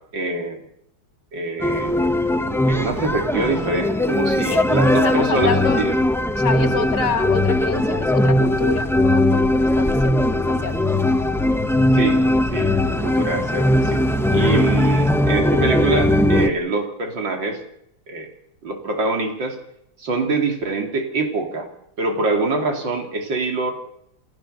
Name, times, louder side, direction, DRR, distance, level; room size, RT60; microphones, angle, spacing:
voice 1, 0.1-0.6 1.3-1.9 2.7-5.9 11.9-12.2 12.5-12.7 13.0-14.0 14.3-17.6 18.1-18.3 18.6-19.6 20.0-21.7 22.0-23.7, right 3 dB, 70° right, 3 dB, 3.4 m, -24 dB
sound 1, 1.6-16.5, left 1 dB, 5° left, 0.4 m, -19 dB
voice 2, 4.5-5.9 6.3-10.8, left 5 dB, 65° left, 9 dB, 2.1 m, -27 dB
28.0 x 14.5 x 6.5 m, 0.76 s
omnidirectional pair, 2.1 m